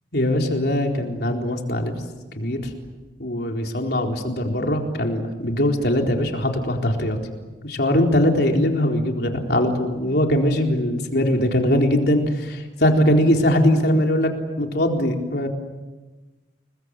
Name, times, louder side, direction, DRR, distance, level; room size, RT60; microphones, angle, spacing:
voice 1, 0.1-1.9 2.4-2.6 3.2-7.2 7.6-14.3 14.6-15.5, left 1 dB, 65° left, 2 dB, 4.1 m, -21 dB
30.0 x 22.0 x 8.3 m, 1.2 s
head